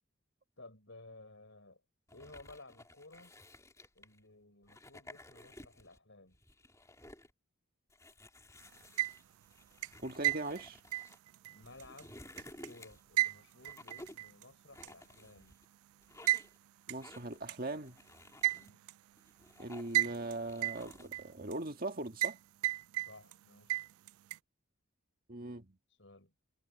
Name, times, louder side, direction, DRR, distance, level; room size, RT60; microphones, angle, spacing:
voice 1, 0.6-1.8 2.1-3.3 3.9-6.4 11.5-12.2 12.6-15.6 18.5-18.8 23.1-23.8 26.0-26.3, left 2 dB, 60° left, 6.6 m, -56 dB
sound 1, 2.1-4.2 4.6-6.0 6.3-7.3 7.9-11.2 11.6-13.1 13.6-14.3 14.7-15.6 16.0-16.6 17.0-17.4 17.9-18.7 19.2-20.1 20.5-21.2, left 1 dB, 15° left, 3.6 m, -55 dB
sound 2, 8.8-9.4 9.8-12.7 13.2-14.4 14.8-14.9 16.3-16.5 16.9-17.0 17.5-17.6 18.4-19.0 19.9-20.3 20.6-21.5 22.2-22.4 22.6-23.4 23.7-24.4, right 17 dB, 85° right, 0.3 m, -33 dB
voice 2, 10.0-10.8 16.9-18.0 19.6-22.4 25.3-25.8, right 2 dB, 40° right, 1.9 m, -40 dB
head